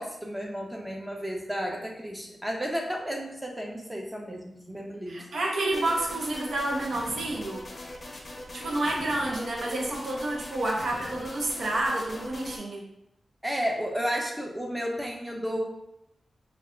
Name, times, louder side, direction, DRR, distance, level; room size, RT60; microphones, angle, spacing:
voice 1, 0.0-5.2 13.4-15.6, equal, 10° right, 0 dB, 0.6 m, -32 dB
voice 2, 5.1-7.6 8.5-12.8, right 1 dB, 75° right, -1 dB, 0.7 m, -29 dB
sound 1, 5.7-12.6, left 1 dB, 30° left, 0.6 m, -41 dB
3.3 x 2.3 x 3.6 m, 0.82 s
wide cardioid pair, 115°, 0 cm